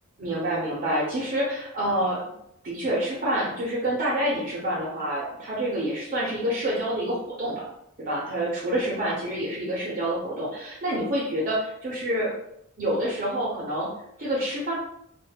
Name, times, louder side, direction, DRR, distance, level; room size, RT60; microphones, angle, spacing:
voice 1, 0.2-2.2 2.6-7.6 8.0-12.3 12.8-13.9 14.2-14.7, right 1 dB, 40° right, -5 dB, 0.6 m, -27 dB
2.2 x 2.0 x 3.3 m, 0.76 s
head